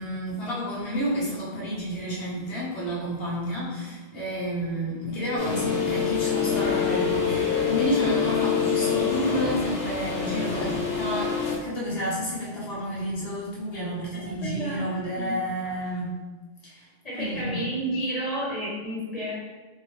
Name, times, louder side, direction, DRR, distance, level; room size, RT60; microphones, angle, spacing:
voice 1, 0.0-16.1 16.6-16.9 17.2-17.6, equal, 70° left, -6 dB, 1.3 m, -30 dB
sound 1, 5.4-11.6, left 6 dB, 90° left, 1.0 m, -26 dB
voice 2, 14.1-14.9 15.1-15.3 17.0-19.3, right 1 dB, 40° left, -8 dB, 1.1 m, -31 dB
3.8 x 2.8 x 3.0 m, 1.3 s
omnidirectional pair, 1.0 m